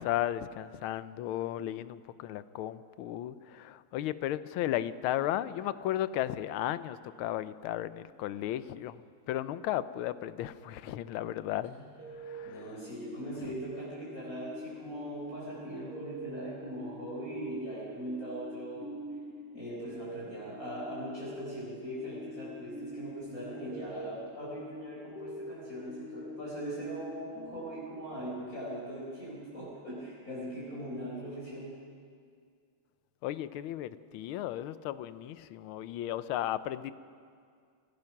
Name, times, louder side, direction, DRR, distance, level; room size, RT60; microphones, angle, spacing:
voice 1, 0.0-11.8 12.1-12.8 33.2-36.9, left 12 dB, 75° left, 14 dB, 1.5 m, -35 dB
sound 1, 12.0-28.3, equal, 5° right, 2.0 m, -45 dB
voice 2, 12.4-18.9 19.5-31.7, right 1 dB, 40° left, -6 dB, 4.9 m, -40 dB
28.5 x 16.0 x 5.9 m, 2.2 s
omnidirectional pair, 2.4 m